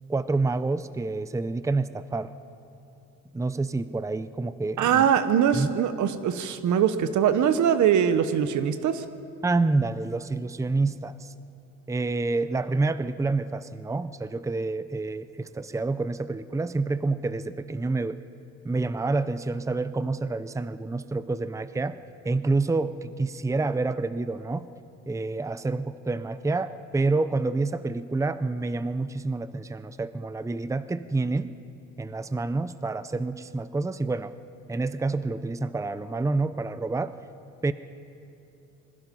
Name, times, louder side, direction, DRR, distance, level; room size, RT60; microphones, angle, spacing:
voice 1, 0.1-2.3 3.3-5.1 5.5-5.7 9.4-11.3 11.9-18.2 18.6-22.0 22.2-24.6 25.1-31.5 32.0-34.3 34.7-37.1 37.6-37.7, right 3 dB, 10° right, 13 dB, 0.6 m, -28 dB
voice 2, 4.8-9.0, right 8 dB, 75° right, 11 dB, 1.2 m, -22 dB
26.5 x 21.0 x 5.5 m, 2.8 s
cardioid pair, 90°, 30 cm